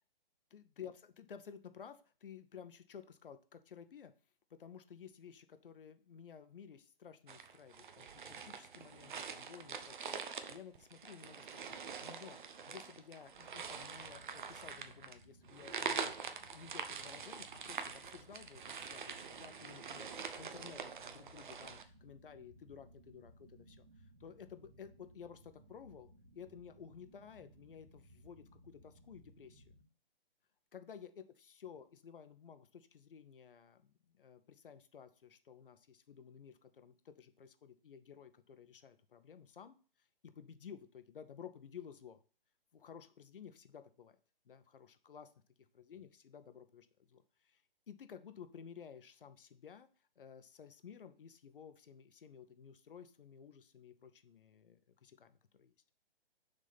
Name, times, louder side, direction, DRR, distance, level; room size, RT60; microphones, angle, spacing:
voice 1, 0.5-4.1 4.5-12.4 12.7-29.7 30.7-39.8 40.2-42.2 42.7-44.2 44.4-45.3 45.7-47.6 47.9-49.9 50.2-55.7, left 7 dB, 65° left, 11 dB, 0.8 m, -54 dB
sound 1, 7.3-21.8, right 6 dB, 55° right, 0.8 m, -45 dB
sound 2, 13.4-29.8, right 1 dB, 85° right, 2.9 m, -62 dB
6.5 x 3.7 x 4.1 m, 0.40 s
figure-of-eight pair, 140°, 30 cm